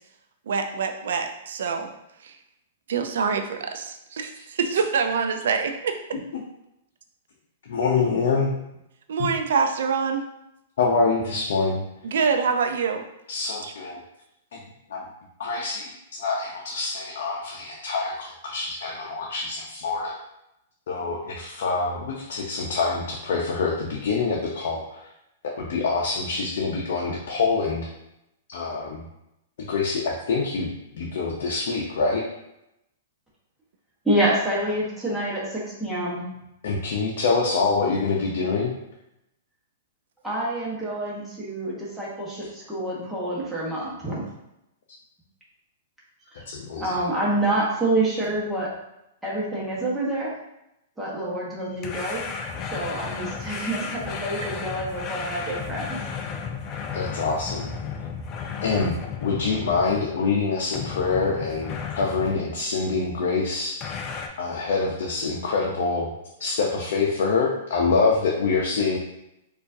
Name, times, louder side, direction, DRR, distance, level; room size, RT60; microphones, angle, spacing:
voice 1, 0.5-1.9 2.2-2.4 2.9-6.0 9.1-10.3 12.0-13.0 13.6-13.7, right 5 dB, 75° right, 5 dB, 0.5 m, -25 dB
voice 2, 7.7-8.5 9.2-9.3 10.8-11.8 13.3-14.0 14.5-14.6 14.9-15.0 15.4-20.1 20.9-25.0 25.6-27.9 28.5-29.0 29.7-32.2 36.6-38.7 46.3-47.0 56.9-57.7 58.6-63.8 64.4-66.1 66.4-69.0, left 4 dB, 70° left, -2 dB, 0.6 m, -25 dB
voice 3, 34.0-36.2 40.2-44.2 46.8-48.7 49.2-50.3 51.0-52.2 52.7-56.0, right 1 dB, 5° right, -7 dB, 1.1 m, -27 dB
sound 1, 51.8-60.3 60.7-62.4 63.8-64.3, left 6 dB, 25° left, 0.4 m, -33 dB
4.4 x 2.5 x 2.6 m, 0.85 s
hypercardioid pair, 150°, 0 cm